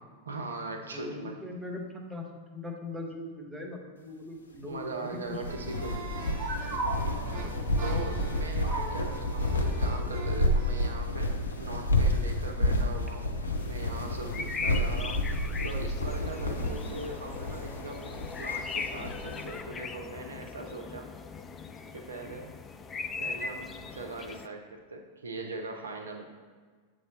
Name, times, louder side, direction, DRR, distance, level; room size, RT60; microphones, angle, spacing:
voice 1, 0.2-1.3 4.6-6.1 7.8-11.3 11.6-13.3 13.6-15.2 15.6-21.1 21.9-22.5 23.2-26.2, right 3 dB, 70° right, 3 dB, 0.5 m, -40 dB
voice 2, 0.9-2.2 2.5-5.4 5.7-5.8 6.6-6.7 7.4-7.8 8.8-8.9 14.4-14.5 16.3-16.5 22.2-22.4, left 2 dB, 15° right, 0 dB, 1.0 m, -41 dB
sound 1, 5.3-19.5, left 1 dB, 75° left, 0.5 m, -30 dB
sound 2, 5.5-10.9, right 3 dB, 55° right, 1.2 m, -38 dB
sound 3, 13.6-24.5, left 5 dB, 20° left, 0.3 m, -39 dB
7.7 x 3.2 x 4.0 m, 1.5 s
figure-of-eight pair, 90°, 0 cm